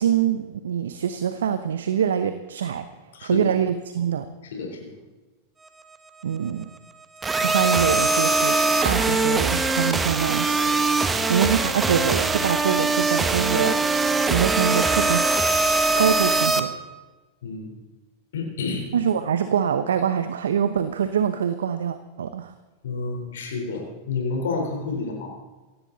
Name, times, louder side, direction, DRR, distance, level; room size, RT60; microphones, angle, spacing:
voice 1, 0.0-2.9 3.2-4.3 6.2-6.7 7.4-8.6 8.8-10.7 11.3-13.9 14.3-15.4 16.0-16.7 18.9-22.5, right 8 dB, 80° right, 11 dB, 0.9 m, -24 dB
voice 2, 3.1-3.5 4.5-5.0 17.4-17.7 18.3-18.9 22.8-25.3, left 4 dB, 75° left, 1 dB, 4.1 m, -29 dB
sound 1, 7.2-16.6, right 3 dB, 15° right, 1.4 m, -22 dB
17.5 x 16.0 x 4.1 m, 1.2 s
hypercardioid pair, 95°, 0 cm